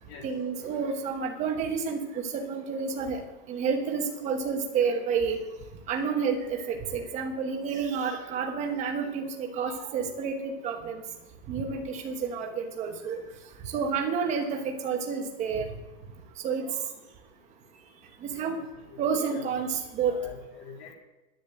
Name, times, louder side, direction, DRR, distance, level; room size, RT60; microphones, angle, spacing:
voice 1, 0.2-3.2 3.5-5.4 5.9-11.0 11.5-13.2 13.7-15.7 16.4-16.6 18.2-18.6 19.0-20.1, right 6 dB, 15° right, 4 dB, 1.1 m, -30 dB
voice 2, 18.4-19.5 20.0-20.9, left 5 dB, 45° left, 0 dB, 3.4 m, -47 dB
10.5 x 9.5 x 7.6 m, 1.1 s
supercardioid pair, 180°, 42 cm